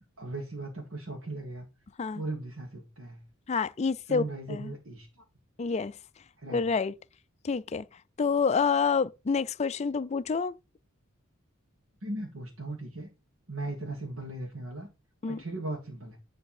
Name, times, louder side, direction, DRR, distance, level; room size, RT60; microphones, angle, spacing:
voice 1, 0.2-1.7 2.1-3.2 4.1-5.2 6.4-6.6 12.0-13.1 13.5-14.9 15.2-16.2, right 2 dB, 70° right, 1.8 m, -37 dB
voice 2, 3.5-4.7 5.6-6.0 6.5-7.0 7.4-7.8 8.2-10.5 15.2-15.4, left 5 dB, 30° left, 0.4 m, -28 dB
10.0 x 3.4 x 5.8 m
head